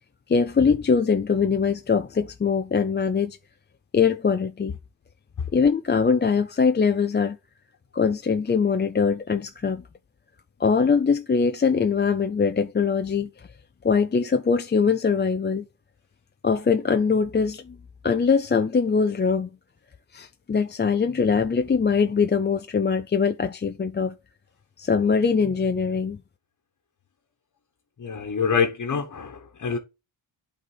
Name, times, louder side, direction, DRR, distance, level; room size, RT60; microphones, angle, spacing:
voice 1, 0.3-3.4 3.9-4.8 5.5-7.4 7.9-9.8 10.6-13.5 13.8-15.7 16.4-17.8 18.0-19.5 20.1-24.2 24.8-26.2, left 5 dB, 25° left, 0.4 m, -22 dB
voice 2, 28.0-29.8, left 6 dB, 40° left, 1.3 m, -26 dB
11.0 x 4.2 x 7.2 m
wide cardioid pair, 180°, 48 cm